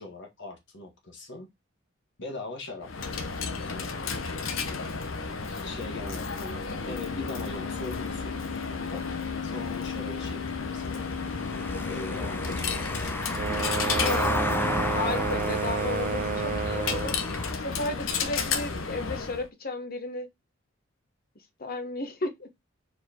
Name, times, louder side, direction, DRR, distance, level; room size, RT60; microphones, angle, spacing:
voice 1, 0.0-1.5 2.2-3.1 3.7-3.9 4.7-5.0 5.5-8.4 8.9-9.1 9.4-11.0 11.9-13.1, left 2 dB, 65° left, 1.8 m, -41 dB
Coin (dropping), 2.8-19.5, left 5 dB, 80° left, 1.0 m, -32 dB
Car passing by / Engine, 10.8-17.5, left 2 dB, 10° left, 0.6 m, -32 dB
sound 1, 13.3-17.2, right 7 dB, 40° right, 0.3 m, -31 dB
voice 2, 14.9-17.2 17.5-20.3 21.6-22.5, left 2 dB, 50° left, 1.3 m, -34 dB
4.8 x 4.5 x 4.4 m
head